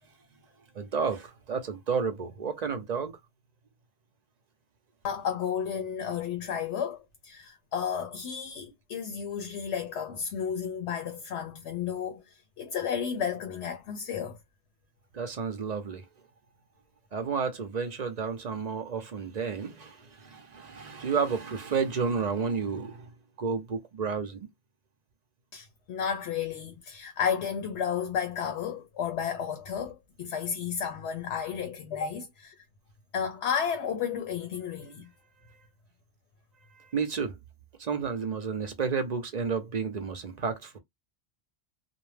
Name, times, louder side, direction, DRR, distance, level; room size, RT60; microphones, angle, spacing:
voice 1, 0.7-3.2 15.1-16.0 17.1-23.1 23.4-24.5 36.7-37.4 37.8-40.7, right 5 dB, 50° right, 0.6 m, -31 dB
voice 2, 5.0-14.4 25.5-32.5 33.1-35.1, left 7 dB, 75° left, 0.9 m, -32 dB
2.5 x 2.1 x 3.2 m
omnidirectional pair, 1.2 m